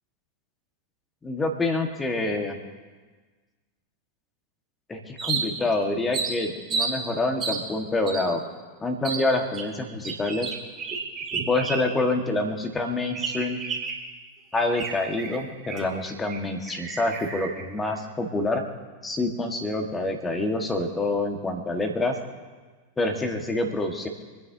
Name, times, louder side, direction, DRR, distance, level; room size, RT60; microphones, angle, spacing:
voice 1, 1.2-2.6 4.9-8.4 8.8-10.5 11.5-13.6 14.5-18.7 19.0-22.2 23.0-24.1, left 2 dB, 15° left, 3 dB, 2.0 m, -27 dB
sound 1, 5.2-5.7 6.1-6.9 7.4-7.6 8.1-8.2 9.0-9.2 9.5-12.1 12.4-12.5 13.1-14.1 14.5-15.9 16.2-16.4 16.7-17.6, right 5 dB, 25° right, 3.2 m, -31 dB
27.5 x 10.0 x 3.0 m, 1.4 s
figure-of-eight pair, 90°, 0 cm